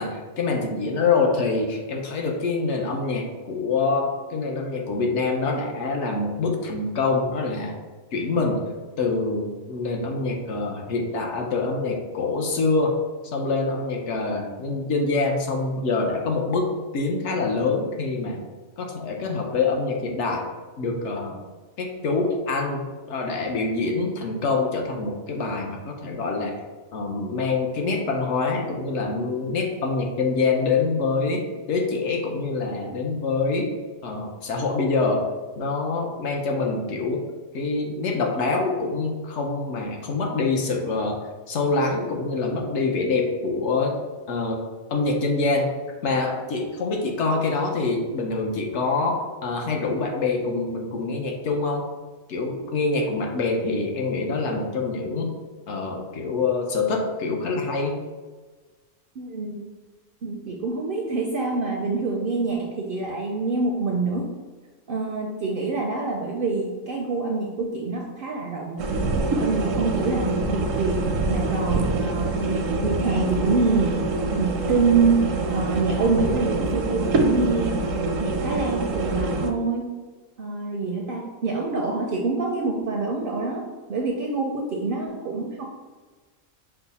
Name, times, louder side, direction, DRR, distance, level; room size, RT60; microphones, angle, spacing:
voice 1, 0.0-7.8 8.1-8.6 9.0-13.0 13.2-18.4 18.8-20.4 20.8-21.4 21.8-26.5 26.9-33.7 34.0-35.2 35.6-37.3 37.5-41.2 41.5-43.9 44.3-44.6 44.9-45.7 46.0-51.9 52.3-55.4 55.7-58.0, left 3 dB, 70° left, 1 dB, 1.0 m, -25 dB
voice 2, 59.2-59.7 60.2-64.3 64.9-68.8 69.4-74.1 74.4-77.8 78.2-79.9 80.4-85.6, right 3 dB, 60° right, 0 dB, 0.6 m, -26 dB
sound 1, 68.8-79.5, right 2 dB, 80° right, 1.0 m, -25 dB
5.6 x 2.1 x 4.0 m, 1.3 s
omnidirectional pair, 1.3 m